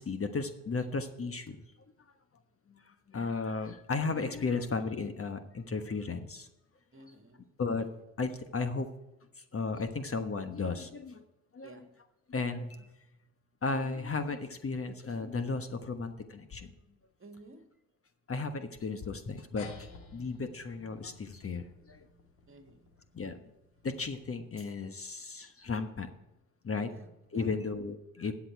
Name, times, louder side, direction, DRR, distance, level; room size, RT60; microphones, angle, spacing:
voice 1, 0.0-1.6 3.1-6.5 7.6-7.9 8.2-8.9 9.5-11.2 11.5-11.8 12.3-12.9 13.6-16.7 18.3-19.9 20.1-22.0 23.1-23.3 23.8-26.1 26.6-26.9 27.3-28.3, left 4 dB, 35° left, 9 dB, 1.2 m, -34 dB
voice 2, 6.9-7.5 11.6-11.9 17.2-17.6 22.5-22.9 26.9-27.6, right 2 dB, 30° right, 6 dB, 2.1 m, -53 dB
sound 1, 19.6-24.4, left 4 dB, 80° left, 2.1 m, -53 dB
13.5 x 8.4 x 4.7 m, 0.96 s
hypercardioid pair, 60°, 41 cm